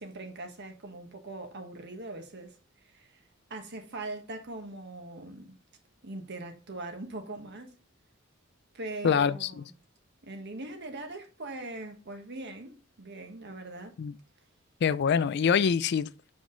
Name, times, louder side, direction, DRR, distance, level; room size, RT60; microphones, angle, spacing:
voice 1, 0.0-3.2 3.5-5.6 6.0-7.7 8.7-9.7 10.2-13.9, right 2 dB, 55° right, 1.4 m, -41 dB
voice 2, 9.0-9.6 14.0-14.1 14.8-16.1, left 6 dB, 55° left, 0.4 m, -25 dB
7.0 x 5.1 x 3.8 m
head